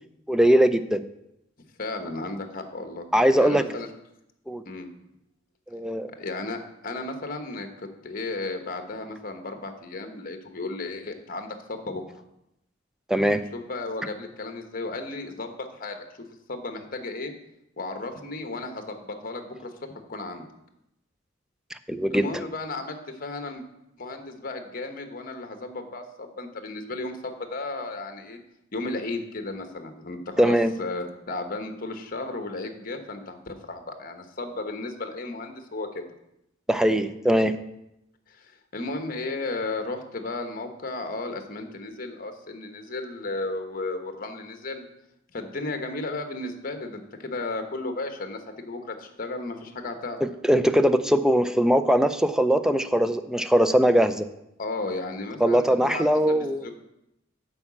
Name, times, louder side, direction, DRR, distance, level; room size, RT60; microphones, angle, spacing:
voice 1, 0.3-1.0 3.1-3.8 4.5-4.6 5.7-6.1 13.1-13.4 21.7-22.3 30.4-30.7 36.7-37.5 50.4-54.3 55.4-56.6, equal, 5° right, 11 dB, 0.4 m, -21 dB
voice 2, 1.8-3.0 3.4-3.9 4.6-4.9 6.2-7.7 8.0-12.0 13.5-16.0 16.5-17.3 17.8-19.7 20.1-20.5 22.1-23.6 24.0-28.4 28.7-36.1 38.3-44.9 45.3-50.2 54.6-56.8, left 2 dB, 45° left, 6 dB, 1.1 m, -34 dB
8.8 x 4.9 x 7.4 m, 0.84 s
head